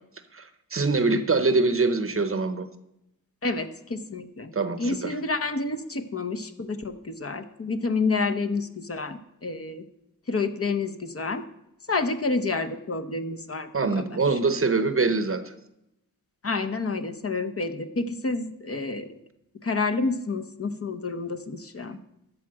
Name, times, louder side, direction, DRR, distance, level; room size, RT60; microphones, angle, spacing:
voice 1, 0.3-2.7 4.5-5.2 13.7-15.5, right 3 dB, 35° right, 11 dB, 0.8 m, -24 dB
voice 2, 3.4-4.5 4.8-9.8 10.3-11.4 11.9-14.0 14.3-14.4 16.4-19.1 19.6-22.0, left 3 dB, 40° left, 9 dB, 0.9 m, -29 dB
13.5 x 4.7 x 7.6 m, 0.83 s
wide cardioid pair, 95°, 36 cm